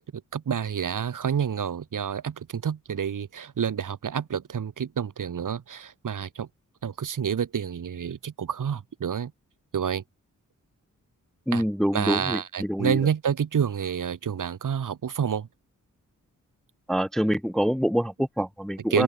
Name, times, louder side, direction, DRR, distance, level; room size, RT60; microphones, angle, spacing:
voice 1, 0.1-6.5 6.8-9.3 9.7-10.0 11.5-11.6 11.9-15.5 18.9-19.0, right 7 dB, 70° right, 3.2 m, -28 dB
voice 2, 11.5-12.4 12.7-13.0 16.9-19.0, equal, ahead, 0.6 m, -25 dB
wide cardioid pair, 140°, 32 cm